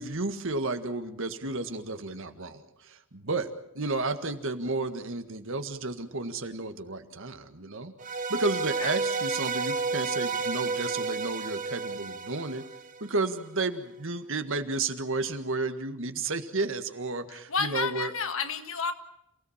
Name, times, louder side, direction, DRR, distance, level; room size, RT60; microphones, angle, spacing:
voice 1, 0.0-12.7 13.0-18.1, right 3 dB, 65° right, 8 dB, 1.7 m, -32 dB
sound 1, 8.0-13.2, right 4 dB, 40° right, 0.9 m, -31 dB
voice 2, 17.5-18.9, left 5 dB, 65° left, 8 dB, 1.8 m, -30 dB
28.0 x 17.0 x 7.3 m, 0.79 s
head